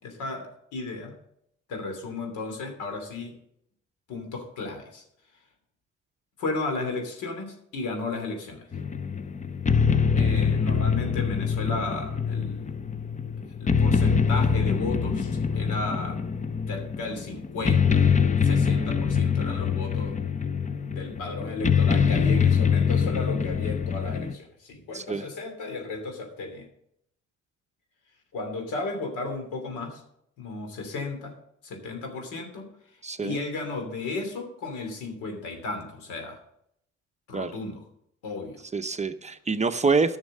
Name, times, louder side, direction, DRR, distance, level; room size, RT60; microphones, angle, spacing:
voice 1, 0.0-1.1 1.7-3.3 4.1-5.0 6.4-8.6 10.2-12.7 13.6-16.3 16.7-18.1 18.4-20.1 20.9-26.7 28.3-30.0 30.4-31.3 31.6-32.7 33.2-36.4 37.3-37.8 38.2-38.6, left 3 dB, 85° left, 4 dB, 2.9 m, -34 dB
sound 1, 8.7-24.3, left 6 dB, 25° left, 0.6 m, -24 dB
voice 2, 24.9-25.2 33.0-33.4 37.3-37.5 38.7-40.2, right 4 dB, 25° right, 10 dB, 0.7 m, -26 dB
11.0 x 6.5 x 6.5 m, 0.74 s
cardioid pair, 90°, 30 cm